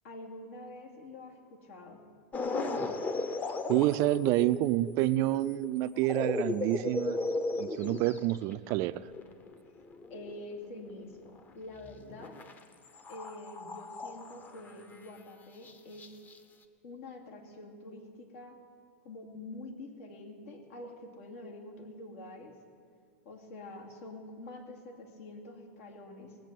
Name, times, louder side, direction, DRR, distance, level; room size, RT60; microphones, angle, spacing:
voice 1, 0.0-2.0 10.1-12.3 13.1-16.1 16.8-18.6 19.0-22.5 23.2-26.4, left 2 dB, 70° left, 1 dB, 2.7 m, -46 dB
sound 1, 2.3-11.4 11.8-12.6 12.8-15.0 15.6-15.7 16.0-16.4, left 2 dB, 25° left, 1.0 m, -36 dB
voice 2, 3.7-7.2 7.6-9.1, right 16 dB, 45° right, 14 dB, 0.4 m, -28 dB
19.5 x 7.5 x 7.6 m, 2.2 s
hypercardioid pair, 125°, 7 cm